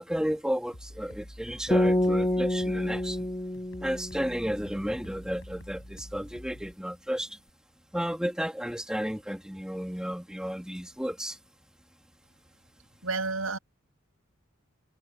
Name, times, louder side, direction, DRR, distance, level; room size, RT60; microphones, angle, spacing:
voice 1, 0.0-3.3 3.8-7.4 7.9-11.4, equal, 5° right, 2.3 m, -32 dB
sound 1, 0.7-6.7, equal, 65° left, 7.4 m, -47 dB
sound 2, 1.7-4.9, left 1 dB, 20° left, 2.1 m, -28 dB
voice 2, 13.0-13.6, right 3 dB, 85° right, 7.3 m, -30 dB
head